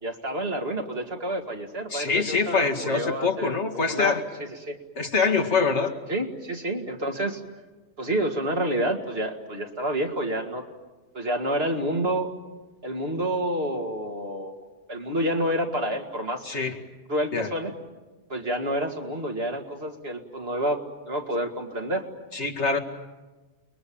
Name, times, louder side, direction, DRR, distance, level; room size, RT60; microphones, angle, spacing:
voice 1, 0.0-4.2 4.6-4.8 6.1-7.4 8.0-10.7 11.1-12.3 12.8-14.6 14.9-16.5 17.1-17.7 18.3-22.0, right 1 dB, 60° right, 3 dB, 2.6 m, -29 dB
voice 2, 1.9-4.2 5.0-5.9 16.4-16.8 17.3-17.5 22.3-22.8, left 4 dB, 85° left, 3 dB, 2.4 m, -24 dB
29.5 x 21.5 x 8.8 m, 1.2 s
omnidirectional pair, 1.1 m